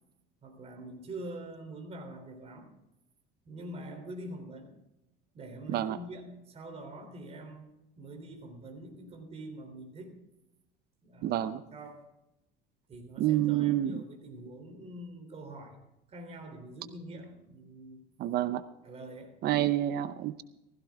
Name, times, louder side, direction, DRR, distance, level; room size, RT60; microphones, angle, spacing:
voice 1, 0.4-2.7 3.4-4.8 5.3-7.7 8.0-10.2 11.0-11.4 11.7-12.1 12.9-15.8 16.1-18.1 18.8-19.4, right 1 dB, 30° right, 3 dB, 3.4 m, -45 dB
voice 2, 11.2-11.6 13.2-14.0 18.2-18.6 19.4-20.4, right 13 dB, 55° right, 13 dB, 0.7 m, -28 dB
15.5 x 15.5 x 3.6 m, 0.93 s
cardioid pair, 140°, 20 cm